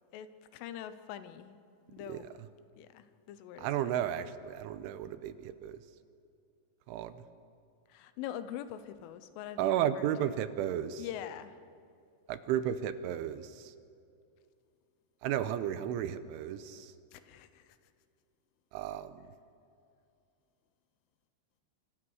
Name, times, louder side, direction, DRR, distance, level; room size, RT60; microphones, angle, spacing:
voice 1, 0.1-1.6 1.9-2.4 2.8-4.1 7.9-10.4 11.0-11.6 17.1-17.8, left 10 dB, 80° left, 12 dB, 3.4 m, -44 dB
voice 2, 3.6-5.8 6.9-7.2 9.6-11.0 12.3-13.7 15.2-16.9 18.7-19.2, right 10 dB, 80° right, 12 dB, 3.2 m, -33 dB
27.5 x 25.5 x 6.4 m, 2.5 s
omnidirectional pair, 5.8 m